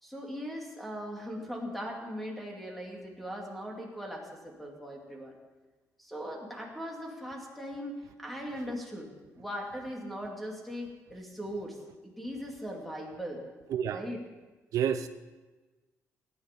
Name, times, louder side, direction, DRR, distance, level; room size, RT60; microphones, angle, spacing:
voice 1, 0.0-5.4 6.0-7.9 8.2-11.8 12.0-13.4 13.9-14.2, equal, ahead, -1 dB, 2.6 m, -39 dB
voice 2, 13.7-14.0 14.7-15.1, right 9 dB, 75° right, 10 dB, 0.7 m, -29 dB
18.0 x 10.0 x 5.4 m, 1.2 s
cardioid pair, 165°, 6 cm